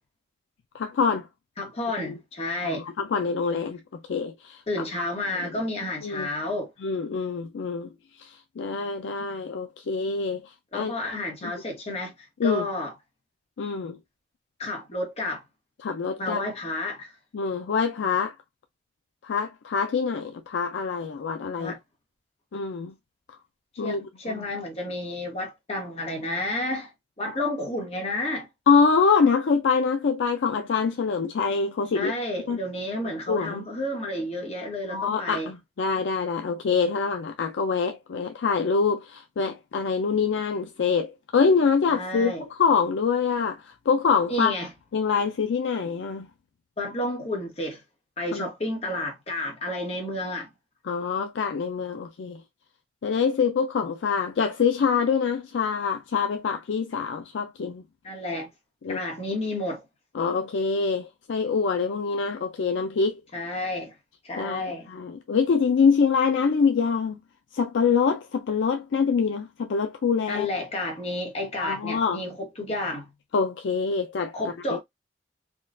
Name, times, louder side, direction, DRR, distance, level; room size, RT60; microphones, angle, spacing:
voice 1, 0.7-1.3 2.0-2.2 2.6-4.6 5.3-5.5 6.0-6.3 6.8-10.9 11.4-11.5 12.4-12.7 13.6-14.0 15.8-16.4 17.3-18.4 19.2-21.8 22.5-22.9 23.8-24.4 28.7-32.1 32.5-32.6 33.3-33.6 34.9-44.5 44.9-46.3 48.3-48.4 50.8-52.4 53.0-57.8 58.8-59.0 60.1-63.2 64.4-67.2 67.5-70.5 71.6-72.2 73.3-74.8, left 5 dB, 85° left, 0.4 m, -25 dB
voice 2, 1.6-2.9 4.7-6.7 10.7-12.9 14.6-15.4 16.2-17.1 21.6-21.8 23.8-26.9 27.2-28.5 31.9-35.5 41.9-42.4 44.3-44.7 46.8-47.8 48.2-50.5 58.0-58.5 58.9-59.8 63.3-63.9 64.2-64.9 70.3-73.1 74.3-74.8, left 1 dB, 35° left, 1.2 m, -31 dB
3.6 x 2.3 x 2.4 m
head